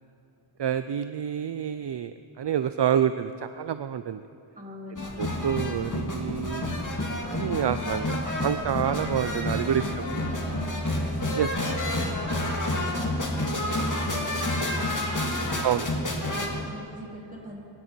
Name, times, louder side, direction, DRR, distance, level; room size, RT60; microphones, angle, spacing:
voice 1, 0.6-4.2 5.2-6.8 7.3-9.9 11.4-11.5 15.6-15.9, right 9 dB, 60° right, 11 dB, 0.5 m, -28 dB
voice 2, 4.5-5.5 9.6-11.2 11.5-12.4 12.6-15.6 15.9-17.6, equal, 15° right, -3 dB, 3.4 m, -43 dB
sound 1, 5.0-16.5, left 1 dB, 40° left, 2.2 m, -29 dB
24.0 x 11.0 x 4.5 m, 2.9 s
wide cardioid pair, 55°, 49 cm